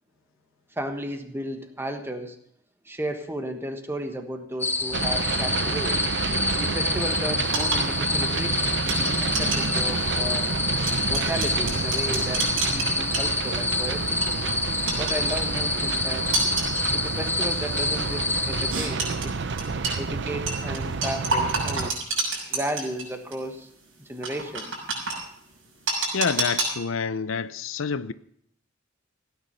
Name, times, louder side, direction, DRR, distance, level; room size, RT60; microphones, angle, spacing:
voice 1, 0.8-2.4 2.8-6.0 6.6-10.4 11.1-14.2 15.0-16.3 16.9-19.3 20.0-22.0 22.5-23.7 24.0-24.7, right 1 dB, 10° right, 1.3 m, -34 dB
sound 1, 4.6-18.7, left 3 dB, 10° left, 0.7 m, -27 dB
sound 2, 4.9-21.9, right 4 dB, 60° right, 0.6 m, -29 dB
sound 3, 7.5-13.7 14.1-14.3 14.9-15.6 16.3-16.9 17.5-17.7 18.7-20.0 20.5-23.0 23.3-23.4 24.2-25.2 25.9-26.7, right 3 dB, 85° right, 6.2 m, -29 dB
voice 2, 26.1-28.1, left 6 dB, 80° left, 0.6 m, -27 dB
16.0 x 9.5 x 5.6 m
head